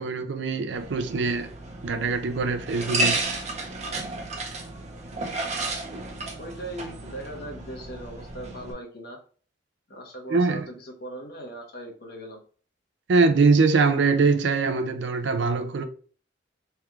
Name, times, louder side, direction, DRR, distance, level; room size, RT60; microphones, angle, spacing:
voice 1, 0.0-1.5 1.8-3.2 10.3-10.7 13.1-15.8, right 4 dB, 70° right, 0.5 m, -22 dB
sound 1, 0.7-8.7, right 2 dB, 40° right, 0.8 m, -32 dB
voice 2, 6.4-9.2 9.9-12.4, right 1 dB, 60° left, 1.0 m, -39 dB
3.4 x 2.4 x 4.4 m
head